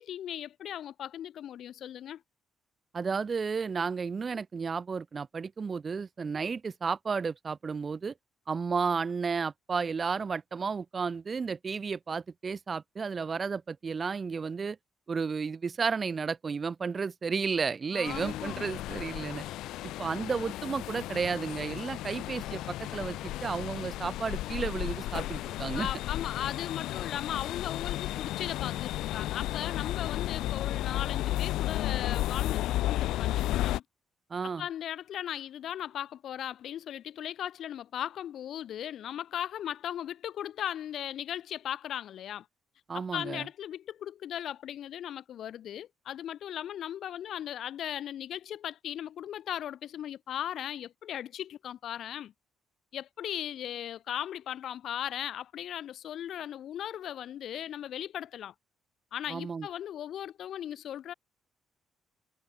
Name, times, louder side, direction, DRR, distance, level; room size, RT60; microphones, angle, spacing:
voice 1, 0.0-2.2 17.9-18.7 25.7-33.8 34.6-42.5 42.9-52.3 52.9-58.5 59.1-61.1, left 10 dB, 70° left, 3.0 m, -37 dB
voice 2, 2.9-8.1 8.5-14.8 15.1-19.4 20.0-25.9 34.3-34.7 42.9-43.5 59.3-59.7, right 5 dB, 40° right, 0.6 m, -32 dB
sound 1, 18.0-33.8, left 15 dB, 90° left, 1.7 m, -33 dB
cardioid pair, 90°, 0 cm